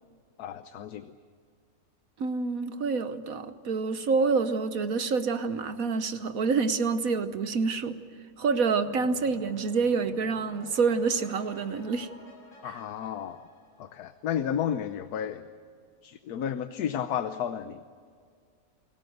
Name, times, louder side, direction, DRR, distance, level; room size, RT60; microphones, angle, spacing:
voice 1, 0.4-1.1 12.6-13.4 13.8-15.4 16.0-17.8, left 9 dB, 80° left, 10 dB, 1.4 m, -32 dB
voice 2, 2.2-8.0 8.4-12.1 12.6-12.8, right 4 dB, 65° right, 10 dB, 1.4 m, -27 dB
sound 1, 8.8-14.3, left 2 dB, 60° left, 6.5 m, -50 dB
29.5 x 19.0 x 8.0 m, 2.2 s
omnidirectional pair, 1.6 m